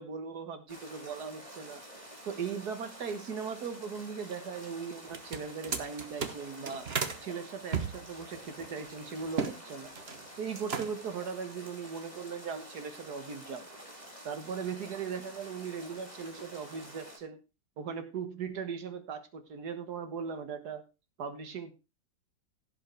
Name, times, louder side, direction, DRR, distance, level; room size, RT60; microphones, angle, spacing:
voice 1, 0.0-1.8 2.3-6.9 7.2-9.9 10.4-13.7 14.2-17.4 17.8-20.9 21.2-21.7, right 6 dB, 55° right, 9 dB, 1.9 m, -39 dB
sound 1, 0.7-17.2, equal, 5° right, 3.4 m, -49 dB
sound 2, 5.1-7.2 7.7-9.6 9.8-10.2 10.5-11.1, right 6 dB, 40° right, 1.1 m, -35 dB
16.0 x 5.6 x 4.5 m, 0.29 s
omnidirectional pair, 2.1 m